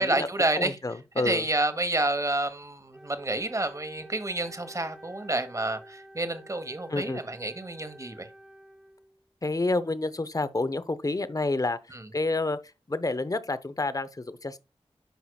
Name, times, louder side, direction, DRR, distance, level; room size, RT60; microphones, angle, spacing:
voice 1, 0.0-0.8 1.2-8.3 11.9-12.0, right 2 dB, 30° right, 1.1 m, -29 dB
voice 2, 0.6-1.4 6.9-7.2 9.4-11.8 12.1-12.6 12.9-14.6, left 2 dB, 35° left, 0.6 m, -29 dB
Wind instrument woodwind instrument, 2.9-9.3, right 1 dB, 5° right, 1.0 m, -51 dB
9.3 x 5.6 x 2.3 m
wide cardioid pair, 60°, 11 cm